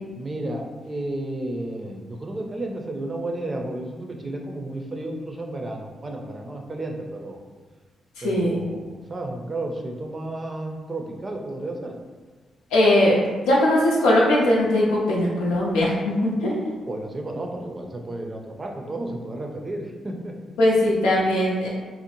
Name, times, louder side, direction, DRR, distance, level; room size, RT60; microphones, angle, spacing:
voice 1, 0.2-7.4 8.2-12.0 16.9-20.3, right 1 dB, 35° right, 2 dB, 0.5 m, -32 dB
voice 2, 8.2-8.6 12.7-13.2 13.5-16.7 20.6-21.7, left 1 dB, 90° left, -5 dB, 0.6 m, -20 dB
2.6 x 2.0 x 2.9 m, 1.4 s
supercardioid pair, 50°, 0 cm